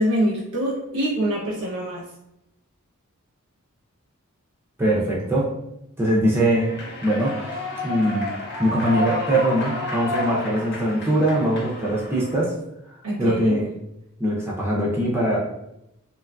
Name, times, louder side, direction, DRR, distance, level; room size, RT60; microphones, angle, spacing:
voice 1, 0.0-2.0 13.0-13.5, equal, 75° right, -4 dB, 0.6 m, -24 dB
voice 2, 4.8-5.5 6.0-6.7 7.0-7.5 7.8-8.3 8.6-12.5 13.2-13.7 14.2-15.4, right 1 dB, 10° right, -5 dB, 0.4 m, -22 dB
Human voice / Clapping / Cheering, 6.4-12.4, left 2 dB, 50° left, 0.5 m, -31 dB
2.9 x 2.4 x 2.2 m, 0.83 s
head